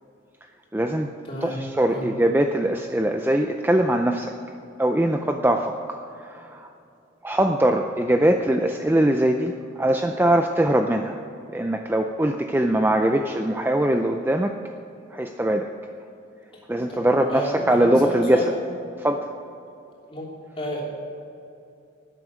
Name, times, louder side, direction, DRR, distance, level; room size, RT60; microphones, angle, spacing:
voice 1, 0.7-1.1 1.4-4.4 4.8-6.7 7.2-11.2 11.5-14.6 15.1-15.7 16.7-18.4 19.0-19.3, right 1 dB, 10° right, 5 dB, 0.4 m, -22 dB
voice 2, 1.2-1.6 1.9-2.1 16.9-18.5 20.1-20.3 20.6-20.8, equal, 30° left, -3 dB, 3.1 m, -30 dB
12.0 x 9.8 x 8.0 m, 2.7 s
head